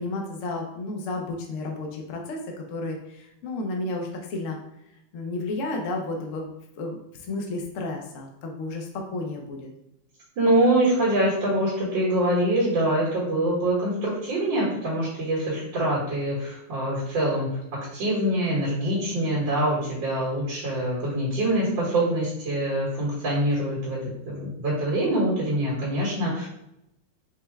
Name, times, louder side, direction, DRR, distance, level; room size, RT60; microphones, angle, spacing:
voice 1, 0.0-2.4 2.7-4.6 5.1-6.5 6.8-7.0 7.3-9.7, left 2 dB, 65° left, 1 dB, 0.8 m, -32 dB
voice 2, 10.4-17.6 17.9-24.0 24.3-26.5, right 1 dB, 70° right, -7 dB, 2.1 m, -24 dB
5.3 x 2.2 x 3.4 m, 0.83 s
omnidirectional pair, 2.0 m